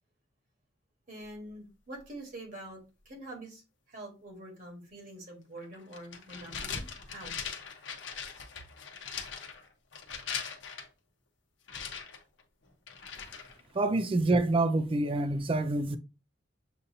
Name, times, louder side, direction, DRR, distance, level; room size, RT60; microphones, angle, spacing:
voice 1, 1.1-3.6 3.9-7.4 8.3-8.4, right 1 dB, 45° right, 1.3 m, -46 dB
sound 1, 5.6-10.9 11.7-13.7, left 6 dB, 80° left, 0.8 m, -40 dB
voice 2, 13.7-16.0, right 2 dB, 30° right, 0.4 m, -27 dB
6.8 x 2.6 x 2.7 m
head